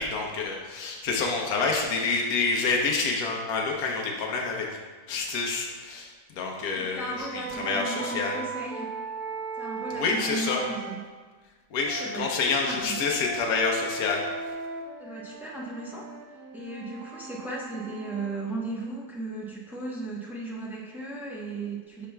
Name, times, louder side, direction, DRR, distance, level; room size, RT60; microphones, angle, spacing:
voice 1, 0.0-4.7 5.1-8.4 10.0-10.6 11.7-14.3, left 4 dB, 80° left, 0 dB, 1.2 m, -28 dB
voice 2, 6.7-8.9 9.5-11.0 11.8-13.0 15.0-22.1, right 2 dB, ahead, -4 dB, 0.5 m, -36 dB
sound 1, 7.2-11.0 11.8-18.3, right 4 dB, 85° right, 1.2 m, -38 dB
8.3 x 5.7 x 2.2 m, 1.4 s
omnidirectional pair, 1.6 m